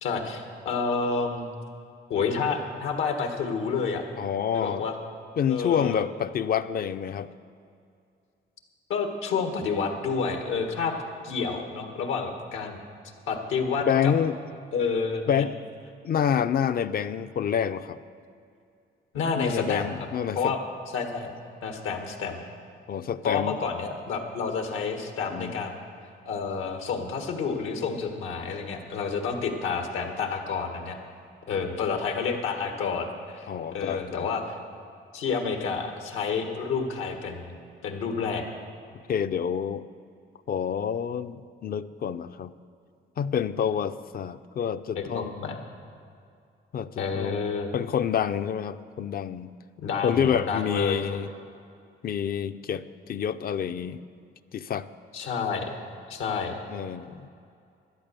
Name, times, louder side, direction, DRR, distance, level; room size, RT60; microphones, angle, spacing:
voice 1, 0.0-1.5 2.1-4.0 4.5-5.0 5.5-6.0 8.9-10.9 11.2-12.8 13.3-14.1 14.7-15.4 19.1-20.0 20.4-20.6 20.9-21.3 21.6-22.4 23.2-25.8 26.3-31.0 31.5-34.6 35.1-37.6 37.8-38.4 45.0-45.6 47.0-47.8 49.8-51.0 55.1-55.7 56.1-56.6, left 5 dB, 90° left, 4 dB, 1.6 m, -29 dB
voice 2, 4.2-4.8 5.4-7.3 13.8-14.4 15.3-15.5 16.0-18.0 19.4-20.5 22.9-23.6 25.3-25.6 33.5-34.3 39.1-39.8 40.5-42.5 43.2-45.6 46.7-49.5 50.0-51.3 52.0-54.0 54.5-54.9 56.7-57.3, left 8 dB, 50° left, 12 dB, 0.5 m, -28 dB
12.5 x 10.0 x 6.8 m, 2.4 s
cardioid pair, 90°, 20 cm